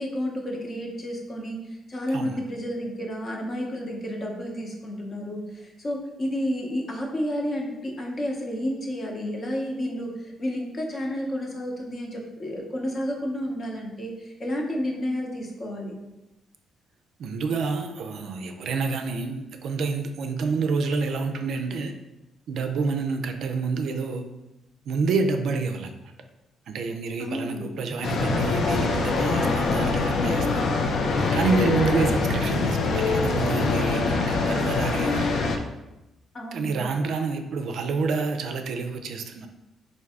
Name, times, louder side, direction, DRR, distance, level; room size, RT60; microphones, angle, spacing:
voice 1, 0.0-15.9 27.2-27.7 36.3-36.8, equal, 40° left, 0 dB, 0.8 m, -31 dB
voice 2, 17.2-21.9 22.5-24.2 24.9-25.9 26.7-30.7 31.3-35.3 36.5-39.5, right 4 dB, 70° right, 6 dB, 0.4 m, -28 dB
sound 1, 28.0-35.6, left 3 dB, 65° left, 0.4 m, -24 dB
3.3 x 2.6 x 3.5 m, 0.98 s
cardioid pair, 90°, 0 cm